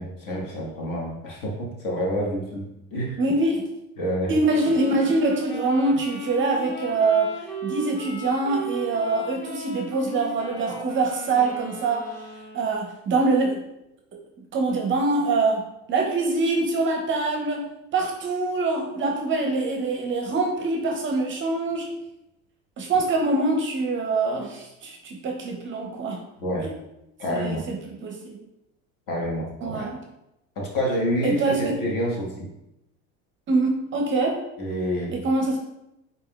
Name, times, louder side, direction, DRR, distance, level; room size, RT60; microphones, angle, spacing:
voice 1, 0.0-3.2 4.0-4.3 26.4-26.7 27.2-27.6 29.1-29.9 30.6-32.5 34.6-35.2, equal, 55° left, -2 dB, 1.3 m, -28 dB
voice 2, 3.2-3.7 4.3-12.1 12.5-13.6 14.5-15.6 15.9-17.7 17.9-21.9 22.8-26.2 26.6-26.7 27.3-28.4 29.6-30.0 31.2-31.7 33.5-34.4 35.1-35.6, right 3 dB, 30° right, 1 dB, 0.6 m, -24 dB
Wind instrument woodwind instrument, 4.5-13.0, right 2 dB, 25° left, 1.0 m, -37 dB
4.2 x 3.5 x 2.2 m, 0.87 s
supercardioid pair, 105°, 40 cm